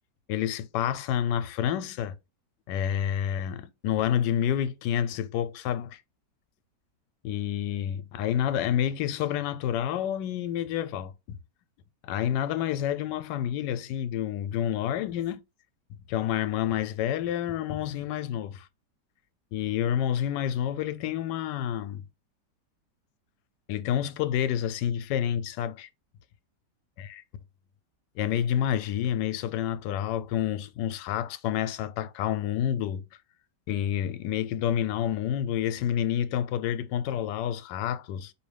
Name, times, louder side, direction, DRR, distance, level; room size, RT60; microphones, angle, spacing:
voice 1, 0.3-2.1 2.7-6.0 7.2-11.4 12.0-15.4 16.1-18.7 19.5-22.0 23.7-25.9 27.0-27.2 28.2-33.0 33.7-38.3, left 10 dB, 90° left, 1.2 m, -29 dB
4.7 x 2.7 x 3.2 m
omnidirectional pair, 1.8 m